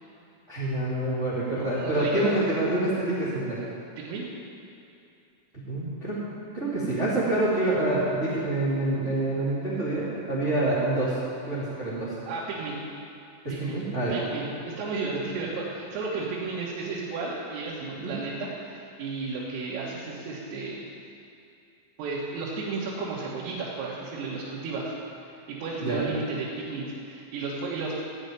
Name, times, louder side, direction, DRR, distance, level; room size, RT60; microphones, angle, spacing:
voice 1, 0.5-3.6 5.5-6.2 6.5-11.1 11.4-12.2 13.4-14.2 17.9-18.1 25.8-26.0, right 2 dB, 50° right, -8 dB, 0.8 m, -27 dB
voice 2, 1.7-2.4 4.0-4.2 12.3-12.8 13.5-13.8 14.1-20.8 22.0-24.9 25.5-28.0, right 3 dB, 85° right, -7 dB, 4.3 m, -33 dB
15.0 x 5.7 x 9.5 m, 2.6 s
omnidirectional pair, 5.7 m